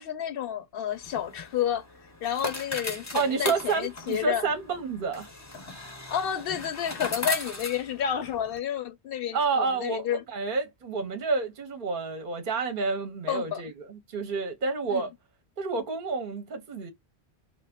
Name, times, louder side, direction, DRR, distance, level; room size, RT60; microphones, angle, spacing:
voice 1, 0.0-1.8 2.2-4.5 6.1-10.2 13.3-13.6 14.9-15.1, left 9 dB, 60° left, 0.8 m, -30 dB
sound 1, 0.9-8.6, left 2 dB, 20° left, 0.5 m, -38 dB
voice 2, 3.1-5.3 9.3-15.1 15.6-16.9, right 4 dB, 55° right, 0.7 m, -29 dB
2.4 x 2.2 x 3.4 m
omnidirectional pair, 1.2 m